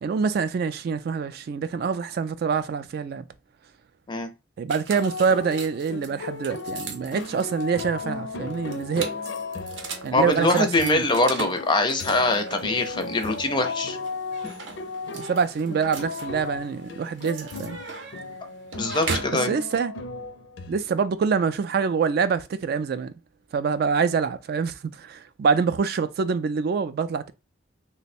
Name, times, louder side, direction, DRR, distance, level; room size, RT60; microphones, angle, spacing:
voice 1, 0.0-3.2 4.6-9.1 10.0-11.1 13.0-13.1 15.1-17.8 19.3-19.9 20.7-23.1 23.5-27.3, right 5 dB, 55° right, 0.3 m, -25 dB
sound 1, 4.7-19.4, right 4 dB, 80° right, 0.7 m, -39 dB
sound 2, 4.9-20.8, left 3 dB, 75° left, 0.5 m, -36 dB
voice 2, 10.1-14.0 18.8-19.6, left 2 dB, 25° left, 0.4 m, -23 dB
3.0 x 2.1 x 4.1 m
head